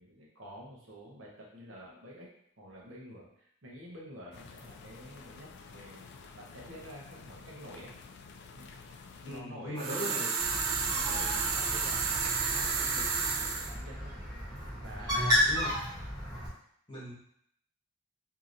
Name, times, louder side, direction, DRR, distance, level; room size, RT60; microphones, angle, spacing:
voice 1, 0.0-2.3 2.6-7.9 8.5-8.7 9.2-10.3 10.9-14.2 14.8-15.4, equal, 65° right, -3 dB, 1.0 m, -48 dB
sound 1, 4.3-9.4, left 4 dB, 55° left, 0.3 m, -51 dB
voice 2, 9.2-10.3 15.0-15.7 16.9-17.1, equal, 25° left, -6 dB, 1.2 m, -39 dB
sound 2, 9.8-13.7, right 5 dB, 85° right, 0.5 m, -31 dB
Bird, 10.4-16.5, left 1 dB, 20° right, 1.0 m, -33 dB
4.6 x 2.8 x 2.6 m, 0.68 s
head